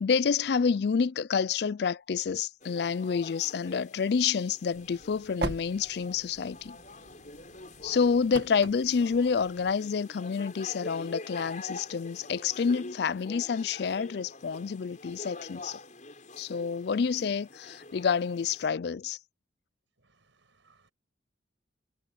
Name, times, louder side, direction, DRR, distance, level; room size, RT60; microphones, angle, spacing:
voice 1, 0.0-6.8 7.8-15.8 16.4-19.2, left 6 dB, 60° left, 0.4 m, -28 dB
sound 1, 2.6-18.7, left 2 dB, 40° left, 6.1 m, -46 dB
sound 2, 4.7-9.8, right 2 dB, 60° right, 2.0 m, -41 dB
voice 2, 20.0-20.9, right 4 dB, 80° right, 5.7 m, -66 dB
head